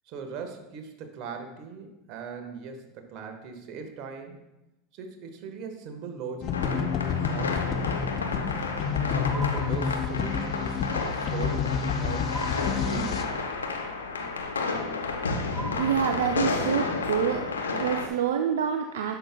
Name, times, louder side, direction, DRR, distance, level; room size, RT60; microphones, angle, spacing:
voice 1, 0.1-4.4 4.9-7.8 8.2-8.4 9.0-12.3 12.8-13.3, right 5 dB, 55° right, 5 dB, 1.2 m, -40 dB
sound 1, 6.4-13.2, left 6 dB, 45° left, 0.6 m, -29 dB
sound 2, 6.5-18.1, left 4 dB, 85° left, 0.6 m, -31 dB
sound 3, 9.3-10.5 12.3-13.5 15.5-16.7, right 2 dB, 10° right, 0.3 m, -41 dB
voice 2, 15.7-17.4 17.7-19.2, right 8 dB, 75° right, 4 dB, 0.4 m, -27 dB
10.5 x 5.8 x 2.2 m, 0.95 s
hypercardioid pair, 80°, 0 cm